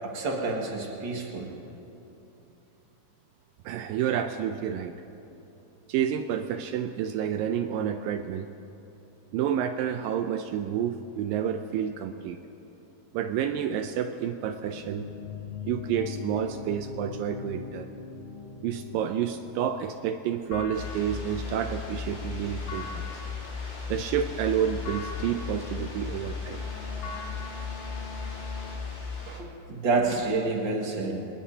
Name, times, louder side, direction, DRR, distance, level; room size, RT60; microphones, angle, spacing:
voice 1, 0.0-1.5 29.3-31.2, right 3 dB, 40° right, -1 dB, 1.8 m, -29 dB
voice 2, 3.7-5.0 5.9-8.5 9.3-12.4 13.1-15.1 15.7-17.9 18.6-23.1 23.9-26.6, right 9 dB, 80° right, 8 dB, 2.0 m, -29 dB
sound 1, 14.7-19.7, left 4 dB, 90° left, 1.3 m, -40 dB
sound 2, 20.5-29.2, left 5 dB, 60° left, 2.6 m, -36 dB
sound 3, 20.7-29.4, left 2 dB, 30° left, 3.2 m, -43 dB
25.0 x 20.0 x 2.8 m, 2.9 s
omnidirectional pair, 4.4 m